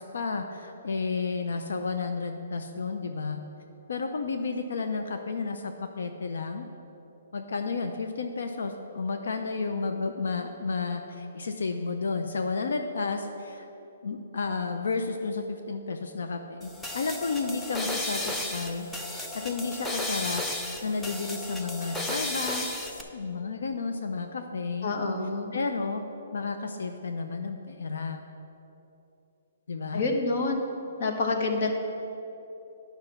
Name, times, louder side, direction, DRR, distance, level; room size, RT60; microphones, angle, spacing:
voice 1, 0.0-3.4 3.9-6.7 7.3-13.7 14.0-20.4 20.8-24.9 25.5-26.0 26.3-28.2 29.7-30.1, left 4 dB, 85° left, 6 dB, 0.6 m, -32 dB
sound 1, 16.6-23.0, left 1 dB, 5° left, 0.4 m, -34 dB
voice 2, 24.8-25.5 29.9-30.7 31.0-31.7, left 3 dB, 45° left, 3 dB, 1.0 m, -27 dB
9.8 x 5.7 x 5.8 m, 3.0 s
hypercardioid pair, 170°, 0 cm